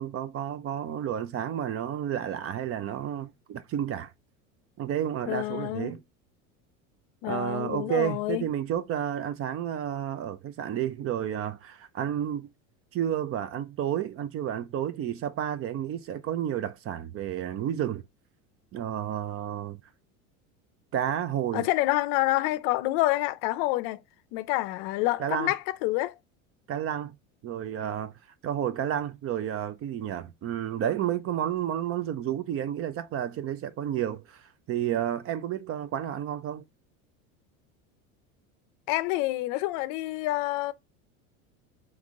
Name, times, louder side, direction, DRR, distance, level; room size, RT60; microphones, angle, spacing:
voice 1, 0.0-4.1 4.8-6.0 7.3-12.5 12.9-18.0 18.7-19.8 20.9-21.7 25.2-25.5 26.7-27.1 27.4-28.1 28.4-36.6, right 10 dB, 35° right, 0.5 m, -31 dB
voice 2, 5.3-6.0 7.2-8.4 21.5-24.0 24.3-26.1 38.9-40.7, left 18 dB, 60° left, 0.5 m, -28 dB
3.6 x 3.1 x 3.6 m
supercardioid pair, 100°, 41 cm